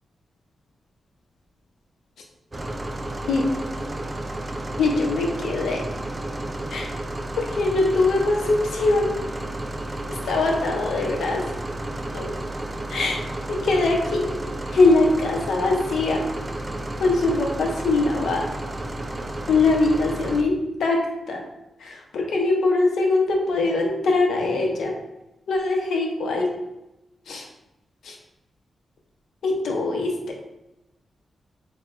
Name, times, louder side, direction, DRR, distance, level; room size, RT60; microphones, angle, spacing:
sound 1, 2.5-20.4, right 1 dB, 25° right, 0.3 m, -32 dB
voice 1, 4.8-5.9 6.7-6.9 7.4-9.1 10.2-11.4 12.1-12.3 12.9-13.2 13.5-14.3 14.7-16.2 17.0-18.5 19.5-21.0 21.3-21.4 21.8-24.9 25.5-26.5 27.3-27.4 28.0-28.2 29.4-30.3, left 3 dB, 85° left, 0 dB, 0.7 m, -22 dB
6.1 x 2.2 x 2.5 m, 0.93 s
wide cardioid pair, 125°, 0 cm